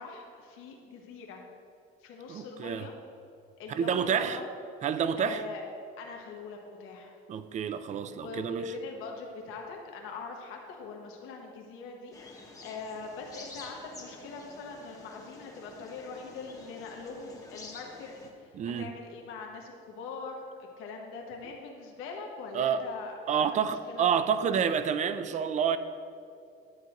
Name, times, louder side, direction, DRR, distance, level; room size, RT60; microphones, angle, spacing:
voice 1, 0.0-1.4 2.0-2.9 3.6-4.5 5.2-5.6 6.0-7.1 8.1-20.5 20.8-23.5 23.9-24.2, left 4 dB, 80° left, 1.1 m, -42 dB
voice 2, 2.3-2.9 3.7-4.4 4.8-5.4 7.3-8.7 18.6-18.9 22.5-22.8 23.3-25.8, right 7 dB, 35° right, 0.4 m, -28 dB
sound 1, 12.1-18.3, left 2 dB, 15° left, 0.9 m, -49 dB
10.5 x 7.8 x 2.9 m
cardioid pair, 140°, 21 cm